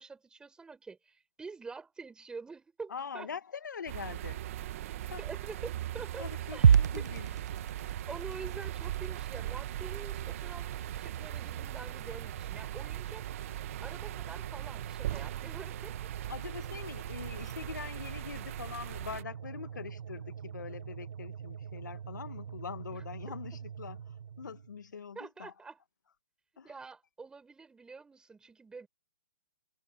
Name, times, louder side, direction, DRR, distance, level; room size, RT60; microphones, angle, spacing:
voice 1, 0.0-3.3 5.2-7.3 8.1-13.2 13.8-15.9 22.9-23.0 25.1-25.8 26.6-28.9, right 4 dB, 10° right, 4.9 m, -46 dB
voice 2, 2.9-4.4 5.0-5.2 6.2-7.3 16.3-24.0 24.4-25.5 26.6-26.7, left 6 dB, 75° left, 1.8 m, -43 dB
sound 1, 3.9-19.2, right 14 dB, 45° right, 2.1 m, -40 dB
sound 2, 6.6-24.9, right 7 dB, 65° right, 1.6 m, -35 dB
hypercardioid pair, 135°, 10 cm